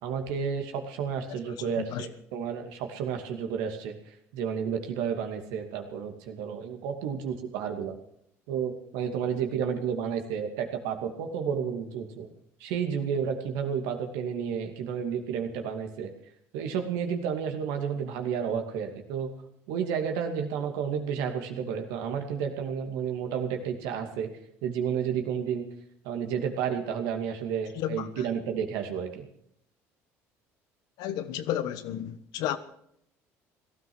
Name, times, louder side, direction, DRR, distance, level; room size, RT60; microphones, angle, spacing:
voice 1, 0.0-3.9 4.3-8.0 8.5-12.3 12.6-16.1 16.5-19.3 19.7-24.3 24.6-25.7 26.0-29.3, right 7 dB, 80° right, 2.5 m, -31 dB
voice 2, 1.3-2.1 27.7-28.2 31.0-32.6, left 11 dB, 75° left, 1.3 m, -33 dB
17.5 x 13.0 x 6.3 m
supercardioid pair, 75°, 7 cm